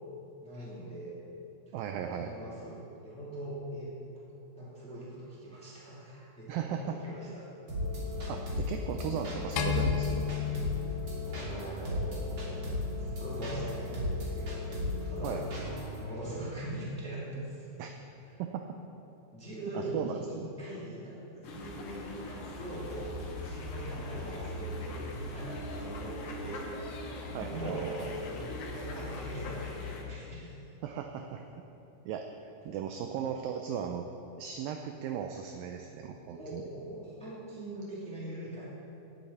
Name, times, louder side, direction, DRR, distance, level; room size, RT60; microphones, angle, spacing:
voice 1, 0.4-1.2 1.7-3.9 4.6-7.5 11.1-14.6 15.0-15.6 16.0-17.7 18.2-18.3 19.3-26.9 27.2-30.6 36.3-38.7, right 1 dB, ahead, -8 dB, 2.0 m, -41 dB
voice 2, 1.7-2.3 6.5-7.0 8.3-10.2 15.2-15.4 17.8-17.9 18.4-18.7 19.7-20.5 27.3-28.0 30.8-31.4 32.1-32.3 32.7-34.1 34.4-36.6, right 8 dB, 80° right, 5 dB, 2.1 m, -36 dB
sound 1, 7.7-16.0, left 2 dB, 35° right, 2.7 m, -35 dB
sound 2, 9.6-11.9, left 8 dB, 90° left, 3.0 m, -32 dB
sound 3, 21.4-30.0, left 1 dB, 65° left, 2.1 m, -40 dB
16.5 x 8.3 x 4.2 m, 2.9 s
omnidirectional pair, 4.6 m